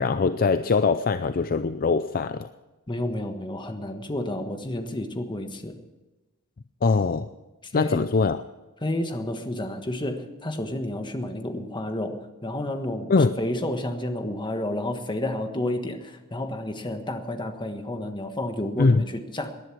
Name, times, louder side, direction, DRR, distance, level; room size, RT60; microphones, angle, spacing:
voice 1, 0.0-2.5 6.8-7.3 7.7-8.4 13.1-13.3 18.8-19.0, left 4 dB, 40° left, 11 dB, 0.5 m, -22 dB
voice 2, 2.9-5.7 7.6-8.0 8.8-19.5, left 1 dB, 20° left, 6 dB, 1.4 m, -30 dB
19.5 x 10.5 x 6.2 m, 1.1 s
head